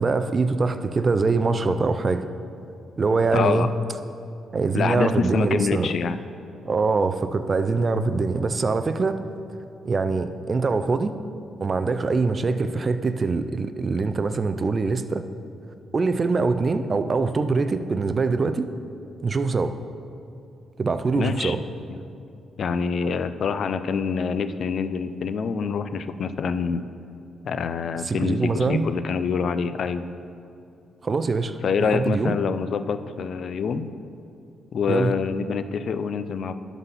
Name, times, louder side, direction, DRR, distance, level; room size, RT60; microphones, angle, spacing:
voice 1, 0.0-2.3 3.0-3.7 4.5-5.9 6.7-9.2 9.8-11.1 11.6-15.2 15.9-18.7 19.2-19.7 20.8-21.6 28.0-28.9 31.0-31.6 31.9-32.4 34.9-35.1, right 4 dB, 35° right, 10 dB, 0.4 m, -23 dB
voice 2, 3.3-3.7 4.7-6.2 21.2-21.5 21.9-22.0 22.6-26.8 27.4-30.0 31.6-33.9 34.7-36.5, left 5 dB, 60° left, 11 dB, 0.4 m, -26 dB
11.5 x 4.1 x 5.7 m, 2.6 s
cardioid pair, 95°, 0 cm